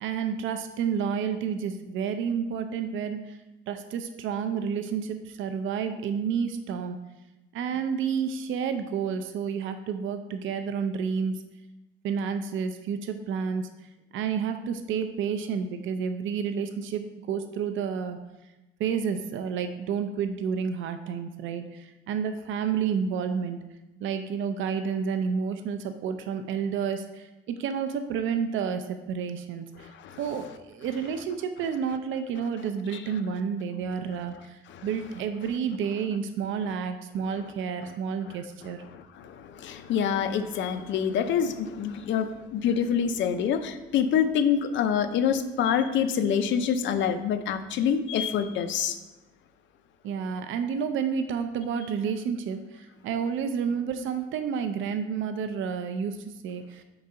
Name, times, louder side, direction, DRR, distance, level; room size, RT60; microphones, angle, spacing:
voice 1, 0.0-3.4 3.7-7.0 7.5-11.4 12.0-13.7 14.1-18.2 18.8-23.6 24.0-29.9 30.2-38.8 50.0-56.8, right 6 dB, 75° right, 8 dB, 0.4 m, -30 dB
voice 2, 29.8-30.2 32.9-33.0 34.7-34.9 38.3-38.4 38.9-49.0, left 8 dB, 65° left, 9 dB, 0.5 m, -26 dB
4.6 x 3.9 x 5.4 m, 1.1 s
cardioid pair, 130°, 20 cm